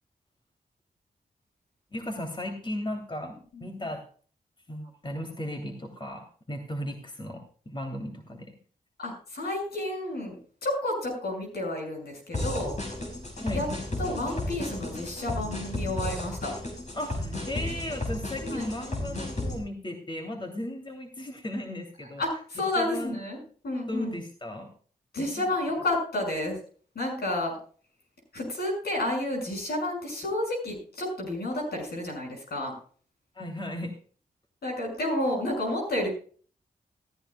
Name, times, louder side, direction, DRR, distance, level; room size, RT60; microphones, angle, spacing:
voice 1, 1.9-4.0 4.7-8.5 13.4-13.6 16.9-22.2 22.8-23.2 23.9-24.7 25.2-25.4 33.3-33.9, left 1 dB, 30° left, 4 dB, 2.9 m, -36 dB
voice 2, 9.0-12.8 13.5-13.7 14.0-16.5 18.4-18.7 22.2-23.4 23.6-24.2 25.1-26.6 26.9-27.6 28.3-32.7 34.6-36.1, left 1 dB, 75° left, 1 dB, 6.2 m, -30 dB
sound 1, 12.3-19.6, left 1 dB, 45° left, 5.7 m, -33 dB
15.0 x 14.5 x 2.3 m, 0.43 s
supercardioid pair, 45°, 17 cm